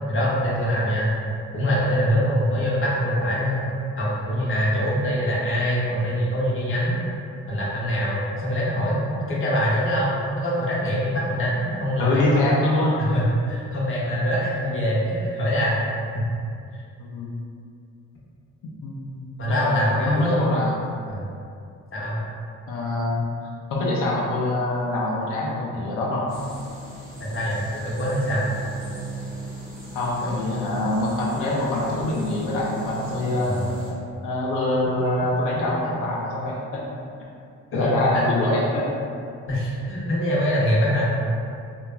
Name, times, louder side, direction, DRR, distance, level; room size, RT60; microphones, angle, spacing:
voice 1, 0.1-1.1 1.5-3.7 4.0-7.0 7.5-12.4 13.0-15.8 16.1-16.3 16.7-16.8 19.4-20.4 21.1-21.2 21.9-22.2 27.2-28.4 33.4-33.9 35.6-36.0 37.7-38.3 39.5-41.1, equal, 45° left, -6 dB, 0.8 m, -24 dB
voice 2, 12.0-13.0 17.0-17.3 18.8-20.8 22.7-23.2 23.7-26.3 29.9-33.6 34.2-37.0 37.7-38.9, left 1 dB, 90° left, -5 dB, 0.5 m, -24 dB
sound 1, 26.3-33.9, right 2 dB, 40° right, 0.9 m, -37 dB
2.9 x 2.3 x 2.3 m, 2.4 s
cardioid pair, 100°, 30 cm